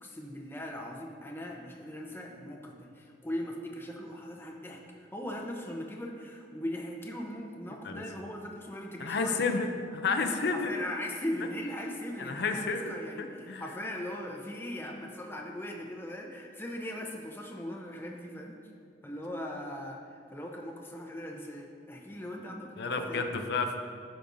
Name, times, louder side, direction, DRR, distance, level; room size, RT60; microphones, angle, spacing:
voice 1, 0.0-9.5 10.5-18.6 19.0-23.3, left 1 dB, 15° left, 0 dB, 0.7 m, -39 dB
voice 2, 9.0-10.7 12.2-12.9 13.2-13.6 22.8-23.8, left 4 dB, 65° left, 5 dB, 0.5 m, -31 dB
13.0 x 5.2 x 2.6 m, 2.2 s
head